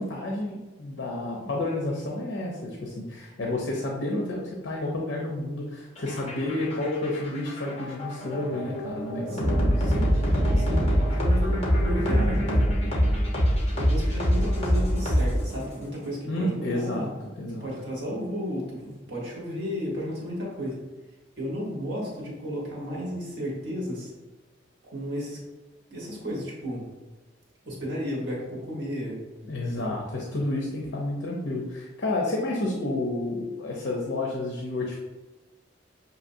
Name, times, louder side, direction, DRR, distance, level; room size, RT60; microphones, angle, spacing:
voice 1, 0.0-9.9 16.2-17.1 17.4-17.7 29.5-35.0, left 2 dB, 65° left, -1 dB, 0.7 m, -30 dB
sound 1, 6.0-15.7, equal, 35° left, 1.1 m, -24 dB
voice 2, 9.9-12.7 13.8-17.1 17.5-20.8 21.4-24.1 24.8-25.4 25.9-26.8 27.6-29.2 29.8-29.9, equal, 60° right, -4 dB, 1.3 m, -33 dB
6.3 x 2.8 x 2.7 m, 1.2 s
head